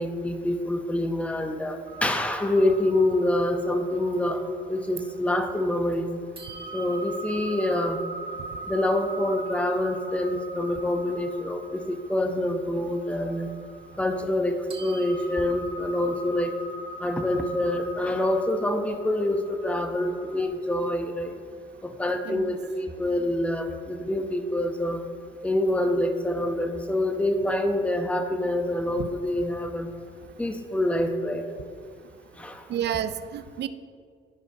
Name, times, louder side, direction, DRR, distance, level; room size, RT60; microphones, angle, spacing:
voice 1, 0.0-6.1 6.7-8.0 8.7-13.5 14.0-16.5 17.0-21.3 21.8-25.0 25.4-29.9 30.4-31.4 32.3-32.7, left 1 dB, 5° left, 6 dB, 0.7 m, -26 dB
sound 1, 1.9-5.9 6.4-14.5 14.7-20.5, right 2 dB, 25° right, 1.4 m, -41 dB
voice 2, 22.2-22.6 29.0-29.1 32.7-33.7, right 10 dB, 60° right, 12 dB, 0.5 m, -30 dB
15.0 x 4.9 x 2.7 m, 2.1 s
cardioid pair, 90°, 20 cm